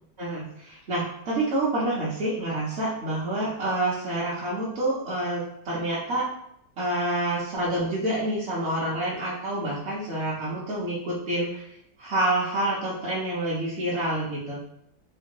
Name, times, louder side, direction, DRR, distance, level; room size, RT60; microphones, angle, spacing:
voice 1, 0.2-6.2 6.8-11.7 12.0-14.6, right 1 dB, 55° right, -8 dB, 0.8 m, -28 dB
3.4 x 2.2 x 2.8 m, 0.74 s
omnidirectional pair, 1.7 m